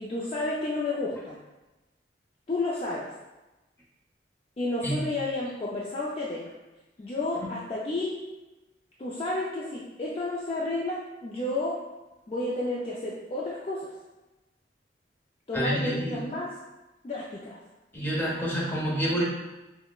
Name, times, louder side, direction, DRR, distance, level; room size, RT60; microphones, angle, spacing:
voice 1, 0.0-1.4 2.5-3.1 4.6-6.5 7.0-8.1 9.0-11.8 12.3-13.9 15.5-16.5 17.0-17.6, left 2 dB, 35° left, -6 dB, 0.4 m, -31 dB
voice 2, 15.5-16.2 17.9-19.2, right 1 dB, 10° left, -5 dB, 0.7 m, -28 dB
5.6 x 2.1 x 2.3 m, 1.1 s
head